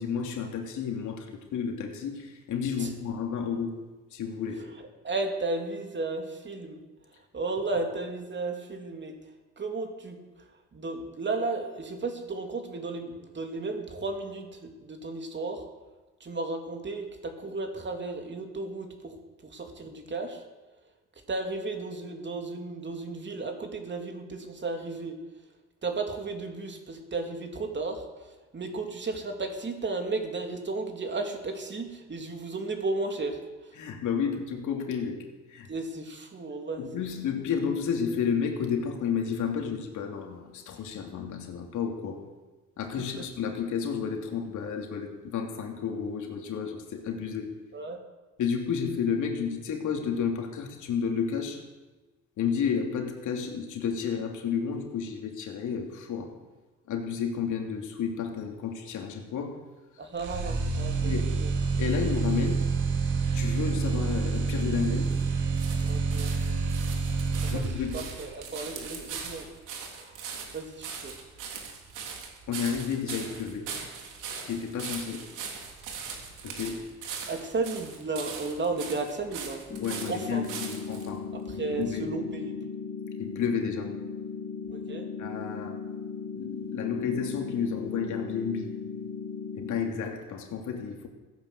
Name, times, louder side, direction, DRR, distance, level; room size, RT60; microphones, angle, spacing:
voice 1, 0.0-4.7 33.7-35.7 36.8-42.2 42.8-47.6 48.4-51.6 52.4-56.3 56.9-59.6 61.0-61.4 61.8-62.7 63.3-65.2 67.5-68.1 72.5-73.8 74.3-75.3 76.4-76.9 79.8-81.3 81.5-82.2 83.2-84.0 85.2-85.8 86.3-88.7 89.6-91.1, left 6 dB, 75° left, 2 dB, 3.1 m, -31 dB
voice 2, 5.0-6.8 7.3-9.1 9.6-10.2 10.7-15.6 16.2-19.1 19.4-20.4 21.3-25.1 25.8-28.0 28.5-33.4 35.7-36.8 47.7-48.0 60.0-61.5 65.8-66.3 67.5-67.6 67.9-69.5 70.0-70.2 70.5-71.1 77.3-79.6 80.1-80.4 81.6-82.5 84.7-85.1, right 3 dB, 35° right, 3 dB, 3.2 m, -34 dB
sound 1, 60.2-68.2, right 5 dB, 75° right, 2.7 m, -28 dB
sound 2, 64.5-81.1 81.8-81.9, right 6 dB, 90° right, 3.4 m, -40 dB
sound 3, 79.7-89.7, left 5 dB, 40° left, 3.7 m, -37 dB
16.0 x 10.5 x 8.3 m, 1.2 s
cardioid pair, 90°, 30 cm